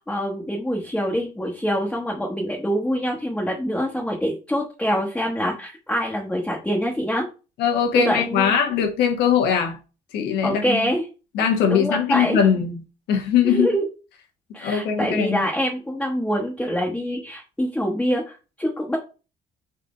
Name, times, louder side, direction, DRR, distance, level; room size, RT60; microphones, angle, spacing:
voice 1, 0.0-7.3 7.9-8.5 10.4-11.0 11.7-12.4 13.4-13.8 14.5-19.0, equal, 5° left, 1.0 m, -25 dB
voice 2, 7.6-9.8 10.1-10.9 11.3-12.8 13.1-13.7 14.6-15.5, left 8 dB, 80° left, 1.1 m, -21 dB
4.1 x 2.7 x 4.7 m
cardioid pair, 110°, 17 cm